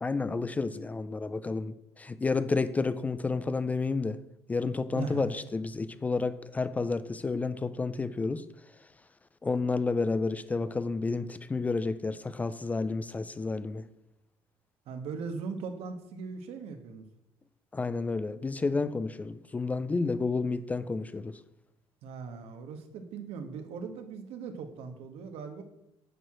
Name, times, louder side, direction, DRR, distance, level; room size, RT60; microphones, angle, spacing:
voice 1, 0.0-4.2 4.5-8.4 9.4-13.8 17.7-21.4, left 3 dB, 15° left, 0.3 m, -30 dB
voice 2, 4.9-5.3 14.9-17.0 22.0-25.6, right 5 dB, 80° right, 1.4 m, -39 dB
9.9 x 4.8 x 7.5 m
cardioid pair, 170°, 10 cm